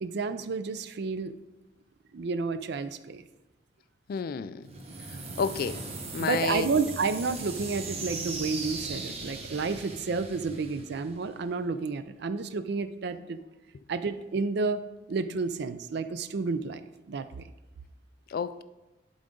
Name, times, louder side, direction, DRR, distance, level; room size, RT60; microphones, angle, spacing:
voice 1, 0.0-1.3 2.1-3.2 6.2-13.4 13.9-14.8 15.1-16.8 17.1-17.4, right 4 dB, 60° right, 0.4 m, -30 dB
voice 2, 4.1-4.7 5.1-5.8 6.1-6.7 18.3-18.6, left 6 dB, 50° left, 0.3 m, -31 dB
sound 1, 4.6-11.5, right 3 dB, 35° right, 0.9 m, -38 dB
11.5 x 3.9 x 3.8 m
head